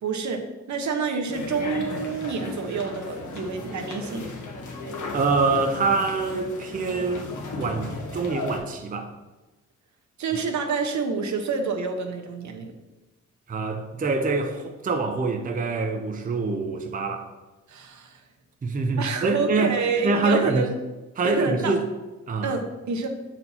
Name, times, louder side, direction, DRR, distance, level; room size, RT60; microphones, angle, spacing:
voice 1, 0.0-4.3 10.2-12.7 17.7-18.2 19.0-20.7 21.2-21.7 22.4-23.1, right 4 dB, 65° right, 4 dB, 0.9 m, -28 dB
sound 1, 1.3-8.6, left 3 dB, 70° left, 1.4 m, -35 dB
voice 2, 5.1-9.1 13.5-17.3 18.6-19.8 20.0-20.7 21.2-21.8 22.3-22.5, right 3 dB, 25° right, 4 dB, 0.6 m, -25 dB
7.0 x 4.4 x 4.1 m, 1.1 s
cardioid pair, 120°, 31 cm